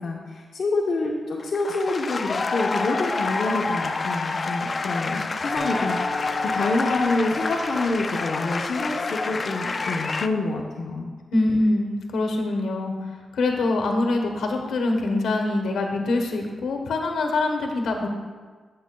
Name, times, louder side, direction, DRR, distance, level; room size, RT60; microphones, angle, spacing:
voice 1, 0.0-11.1, left 3 dB, 55° left, -1 dB, 0.9 m, -27 dB
sound 1, 1.4-10.3, left 3 dB, 40° left, 0.4 m, -28 dB
Acoustic guitar, 5.6-9.4, equal, 35° right, 1.9 m, -38 dB
voice 2, 11.3-12.9 13.3-18.1, left 2 dB, 85° left, 3 dB, 1.1 m, -24 dB
13.5 x 7.7 x 2.3 m, 1.5 s
cardioid pair, 105°, 0 cm